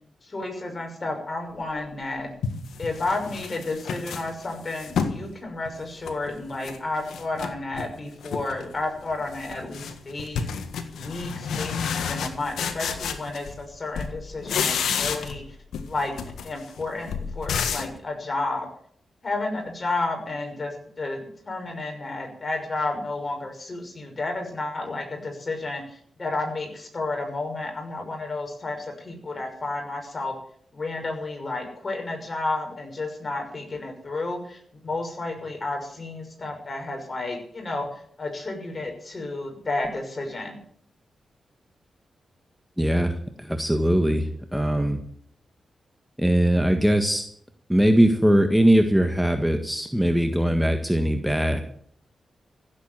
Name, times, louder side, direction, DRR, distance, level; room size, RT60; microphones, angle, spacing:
voice 1, 0.2-2.3 2.8-10.5 10.9-15.4 15.9-16.1 16.4-18.7 19.2-30.4 30.7-40.6, left 2 dB, 40° left, 3 dB, 6.0 m, -31 dB
sound 1, 1.8-1.9 2.4-5.2 5.7-6.8 7.1-7.9 8.2-8.7 9.0-13.7 13.9-15.5 15.7-18.0, left 6 dB, 90° left, 1.6 m, -31 dB
voice 2, 42.8-45.0 46.2-47.2 47.7-51.6, right 1 dB, 5° right, 6 dB, 1.7 m, -21 dB
15.5 x 8.4 x 9.0 m, 0.62 s
cardioid pair, 60°, 0 cm